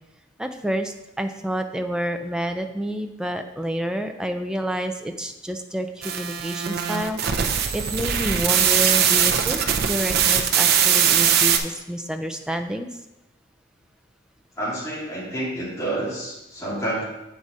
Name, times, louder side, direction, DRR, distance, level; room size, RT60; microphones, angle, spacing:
voice 1, 0.4-9.6 9.9-12.9, equal, 5° right, 6 dB, 0.4 m, -29 dB
sound 1, 6.0-11.6, right 8 dB, 50° right, 0.6 m, -21 dB
voice 2, 14.6-17.0, right 1 dB, 15° left, -8 dB, 2.1 m, -29 dB
7.5 x 4.1 x 4.7 m, 0.95 s
head